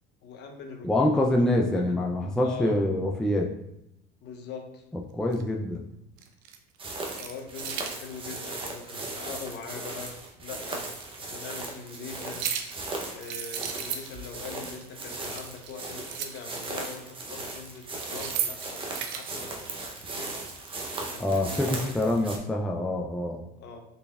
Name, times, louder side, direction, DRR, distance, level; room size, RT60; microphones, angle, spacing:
voice 1, 0.2-0.9 1.2-2.0 2.4-2.8 4.2-4.8 7.2-10.9 11.2-12.5 13.1-20.3 21.0-22.3 23.6-23.8, left 5 dB, 55° left, 3 dB, 0.8 m, -42 dB
voice 2, 0.8-3.5 5.1-5.8 21.2-23.4, left 1 dB, 5° left, 0 dB, 0.4 m, -25 dB
sound 1, 5.3-5.4 6.2-6.6 6.9-8.0 9.8-9.9 11.0-11.1 12.2-12.8 13.2-14.4 14.7-14.8 15.1-16.5 17.9-19.5 21.1-21.8, right 8 dB, 80° right, 0.5 m, -35 dB
sound 2, 6.8-22.4, right 2 dB, 25° right, 0.7 m, -38 dB
4.0 x 3.3 x 2.3 m, 0.81 s
supercardioid pair, 95°, 21 cm